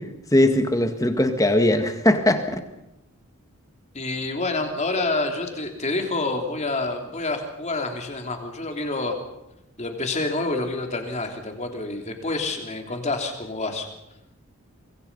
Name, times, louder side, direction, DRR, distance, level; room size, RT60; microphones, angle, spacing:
voice 1, 0.3-2.6, left 1 dB, 15° left, 7 dB, 1.9 m, -20 dB
voice 2, 3.9-9.2 9.8-13.9, left 2 dB, 30° left, 4 dB, 3.2 m, -28 dB
25.0 x 22.5 x 5.6 m, 0.88 s
head